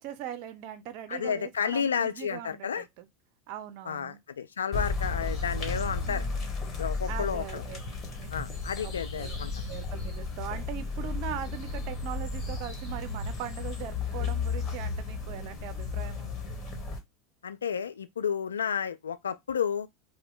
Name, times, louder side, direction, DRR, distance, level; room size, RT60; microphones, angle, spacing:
voice 1, 0.0-3.1 3.5-4.2 6.0-6.4 7.1-7.8 8.2-8.3 8.8-8.9 9.2-9.4 9.7-16.5, right 10 dB, 60° right, 0.4 m, -40 dB
voice 2, 1.1-2.8 3.9-6.3 6.8-7.6 8.3-9.5 17.4-19.9, left 7 dB, 90° left, 0.3 m, -31 dB
sound 1, 4.7-17.0, left 4 dB, 35° left, 1.3 m, -34 dB
2.8 x 2.1 x 3.7 m
hypercardioid pair, 90°, 0 cm